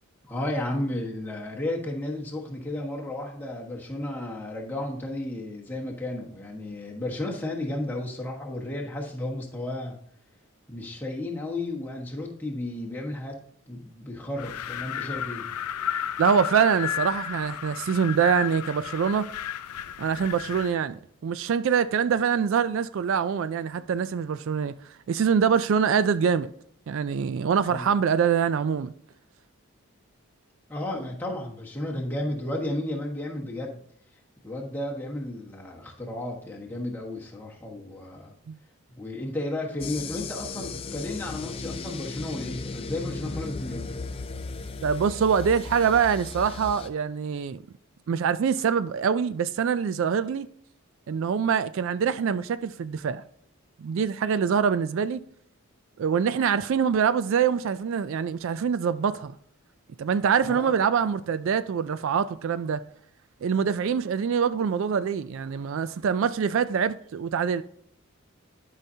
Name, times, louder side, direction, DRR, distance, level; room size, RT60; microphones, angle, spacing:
voice 1, 0.3-10.0 10.7-13.4 13.7-15.5 27.7-27.9 30.7-33.8 34.4-38.3 38.9-44.0 60.5-60.7, left 1 dB, 10° left, 1.3 m, -33 dB
Wind, 14.4-20.8, left 10 dB, 90° left, 0.4 m, -33 dB
voice 2, 16.2-19.3 20.0-24.7 25.1-26.5 26.9-28.9 38.5-38.6 44.8-47.6 48.1-50.5 51.1-53.2 53.8-55.2 56.0-59.3 60.0-62.8 63.4-67.6, right 7 dB, 60° right, 0.3 m, -24 dB
sound 1, 39.8-46.9, left 3 dB, 25° left, 0.4 m, -36 dB
11.5 x 5.6 x 2.8 m
head